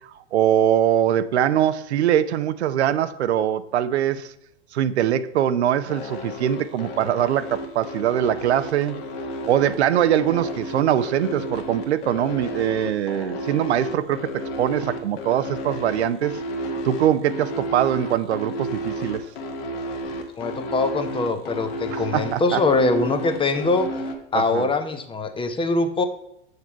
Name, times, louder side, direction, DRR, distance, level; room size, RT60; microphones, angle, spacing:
voice 1, 0.3-4.3 4.7-9.0 9.5-14.2 14.6-16.4 16.8-19.2 21.9-22.6 24.3-24.7, right 10 dB, 75° right, 13 dB, 0.7 m, -22 dB
sound 1, 5.9-24.1, equal, 60° left, 1.5 m, -32 dB
voice 2, 20.4-23.9 24.3-26.0, left 3 dB, 15° left, 8 dB, 0.8 m, -23 dB
7.1 x 6.6 x 4.5 m, 0.79 s
hypercardioid pair, 100°, 33 cm